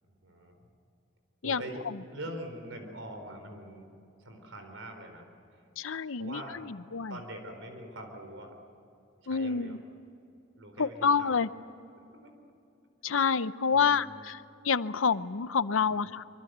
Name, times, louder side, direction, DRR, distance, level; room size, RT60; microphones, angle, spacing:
voice 1, 0.0-0.5 1.4-1.8 2.1-3.9 4.2-5.2 6.1-6.7 7.1-8.5 9.2-9.8 10.6-11.4 12.1-12.3 13.7-14.2 15.9-16.1, right 1 dB, 80° right, 5 dB, 4.3 m, -43 dB
voice 2, 1.4-2.0 5.8-7.2 9.3-9.8 10.8-11.5 13.0-16.3, left 5 dB, 90° left, 15 dB, 0.7 m, -28 dB
25.0 x 24.5 x 8.1 m, 2.6 s
head